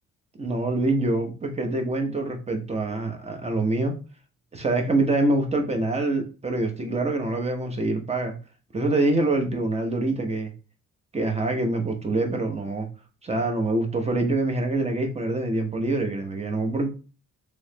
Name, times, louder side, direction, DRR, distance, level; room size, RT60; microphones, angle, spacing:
voice 1, 0.4-3.9 4.5-8.3 8.7-10.5 11.1-12.9 13.2-16.9, right 2 dB, 20° right, 4 dB, 0.9 m, -25 dB
3.1 x 3.1 x 2.8 m, 0.33 s
cardioid pair, 90°, 30 cm